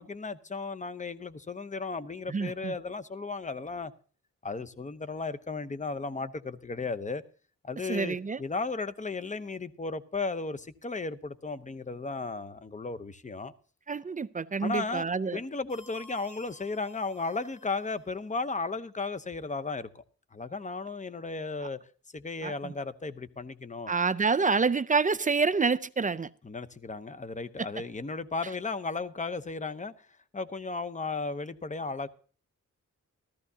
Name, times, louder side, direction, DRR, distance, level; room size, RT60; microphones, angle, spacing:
voice 1, 0.0-3.9 4.4-7.2 7.6-13.5 14.6-20.0 20.3-21.8 22.1-23.9 26.4-30.1 30.3-32.1, left 3 dB, 25° left, 0.8 m, -35 dB
voice 2, 2.3-2.7 7.9-8.4 13.9-15.4 22.4-22.7 23.9-26.3, right 4 dB, 25° right, 0.5 m, -27 dB
sound 1, 15.7-18.1, left 1 dB, 75° left, 4.3 m, -54 dB
14.5 x 13.5 x 2.8 m
cardioid pair, 75°, 29 cm